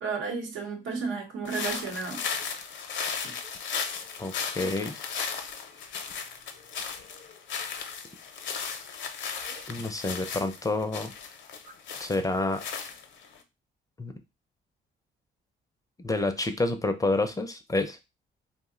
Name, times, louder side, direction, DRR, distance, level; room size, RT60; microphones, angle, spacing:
voice 1, 0.0-2.2 3.2-3.3 9.5-9.7 11.6-11.7, right 4 dB, 85° right, 3 dB, 0.9 m, -33 dB
sound 1, 1.4-13.4, left 6 dB, 65° left, 0.6 m, -36 dB
voice 2, 4.2-5.0 9.7-11.1 12.0-12.6 14.0-14.1 16.0-18.0, left 2 dB, 15° left, 7 dB, 0.4 m, -28 dB
2.6 x 2.0 x 3.6 m, 0.24 s
cardioid pair, 90°, 20 cm